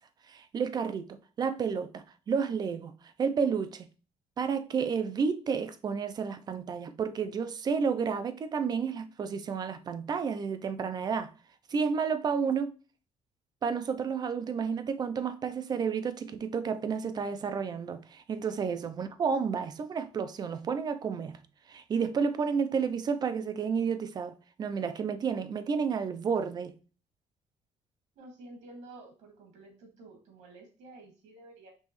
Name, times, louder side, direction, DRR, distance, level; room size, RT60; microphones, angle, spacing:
voice 1, 0.3-2.9 3.2-3.9 4.4-11.3 11.7-12.7 13.6-21.4 21.7-26.7, right 6 dB, 35° right, 0.4 m, -31 dB
voice 2, 28.2-31.7, right 2 dB, 85° right, 2.0 m, -51 dB
5.4 x 3.0 x 3.0 m
cardioid pair, 145°, 12 cm